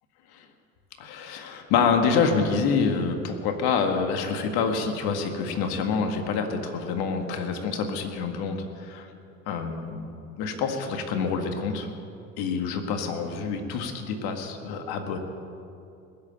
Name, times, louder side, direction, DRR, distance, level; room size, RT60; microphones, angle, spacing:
voice 1, 1.0-9.1 9.5-10.1 10.4-11.9 12.4-15.2, left 5 dB, 60° left, 5 dB, 2.0 m, -27 dB
19.0 x 8.2 x 8.9 m, 2.6 s
hypercardioid pair, 65°, 42 cm